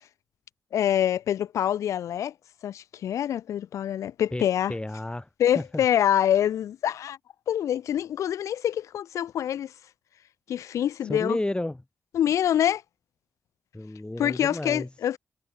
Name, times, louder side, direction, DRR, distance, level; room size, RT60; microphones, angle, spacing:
voice 1, 0.7-2.3 2.6-4.7 5.4-7.2 7.5-9.7 10.5-11.4 12.1-12.8 14.2-15.2, left 10 dB, 80° left, 0.3 m, -25 dB
voice 2, 4.7-5.3 5.5-5.8 11.0-11.8 13.7-14.9, left 1 dB, 20° left, 3.4 m, -31 dB
supercardioid pair, 40°, 5 cm